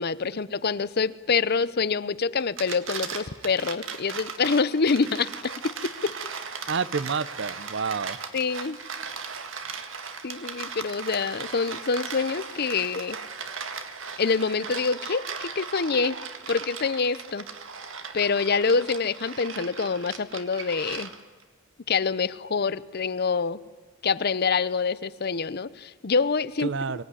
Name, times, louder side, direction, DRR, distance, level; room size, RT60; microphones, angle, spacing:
voice 1, 0.0-6.1 8.3-8.8 10.2-13.2 14.2-16.2 16.5-17.4 18.1-21.1 21.9-23.6 24.0-27.0, left 5 dB, 55° left, 17 dB, 0.7 m, -26 dB
sound 1, 2.4-21.4, right 5 dB, 80° right, 1.9 m, -37 dB
voice 2, 6.7-8.2 26.6-27.0, right 5 dB, 65° right, 17 dB, 0.7 m, -29 dB
24.0 x 18.0 x 9.9 m, 1.3 s
head